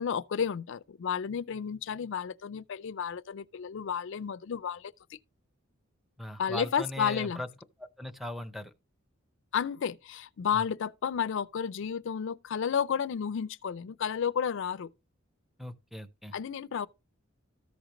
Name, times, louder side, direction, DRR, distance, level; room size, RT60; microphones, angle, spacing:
voice 1, 0.0-5.2 6.4-7.4 9.5-14.9 16.3-16.9, left 7 dB, 60° left, 0.4 m, -32 dB
voice 2, 6.2-7.5 7.8-8.7 10.5-10.6 15.6-16.3, left 1 dB, ahead, 0.6 m, -39 dB
14.0 x 5.0 x 2.9 m
head